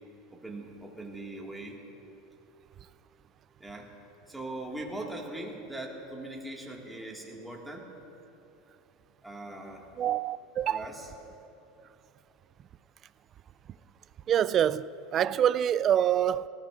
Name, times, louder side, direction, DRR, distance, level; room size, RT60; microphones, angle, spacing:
voice 1, 0.3-1.8 3.6-3.9 4.3-7.9 9.2-9.8 10.6-11.1, right 1 dB, 5° right, 2.0 m, -40 dB
voice 2, 10.0-10.9 14.3-16.5, right 10 dB, 35° right, 0.3 m, -26 dB
18.5 x 14.0 x 2.5 m
supercardioid pair, 120°, 0 cm